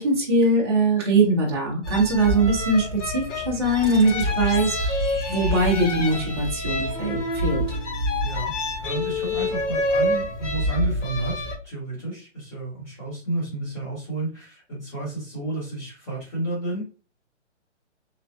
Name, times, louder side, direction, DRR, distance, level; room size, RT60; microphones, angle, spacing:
voice 1, 0.0-4.8 5.3-7.8, right 2 dB, 20° right, -4 dB, 0.5 m, -22 dB
sound 1, 1.8-11.5, left 1 dB, 75° left, 1.0 m, -27 dB
sound 2, 3.8-7.3, left 1 dB, 55° left, 1.4 m, -43 dB
voice 2, 8.2-16.8, right 2 dB, 15° left, -7 dB, 1.0 m, -31 dB
3.2 x 2.0 x 2.6 m, 0.34 s
hypercardioid pair, 160°, 36 cm